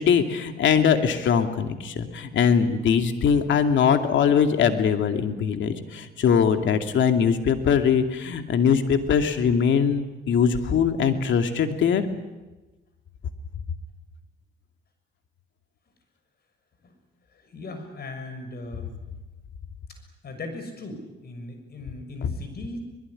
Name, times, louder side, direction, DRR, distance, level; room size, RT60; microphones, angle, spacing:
voice 1, 0.0-12.1, left 7 dB, 70° left, 7 dB, 2.6 m, -21 dB
voice 2, 17.3-18.9 20.2-22.8, left 2 dB, 50° left, 7 dB, 6.5 m, -38 dB
23.0 x 21.0 x 9.9 m, 1.1 s
cardioid pair, 90°, 20 cm